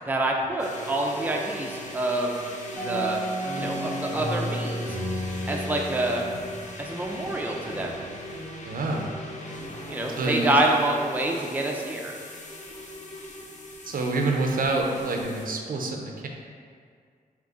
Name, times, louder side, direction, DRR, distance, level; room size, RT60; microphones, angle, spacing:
voice 1, 0.1-2.4 2.7-3.2 3.5-5.0 5.5-6.2 6.8-8.0 9.9-12.2, right 1 dB, 10° right, 0 dB, 0.4 m, -27 dB
sound 1, 0.6-15.5, left 1 dB, 50° left, 0.6 m, -40 dB
sound 2, 2.8-7.4, right 1 dB, 15° left, 1.3 m, -32 dB
voice 2, 8.7-9.1 10.2-10.6 13.8-16.3, right 2 dB, 60° right, 1 dB, 0.5 m, -27 dB
3.9 x 2.8 x 3.5 m, 2.1 s
cardioid pair, 75°, 16 cm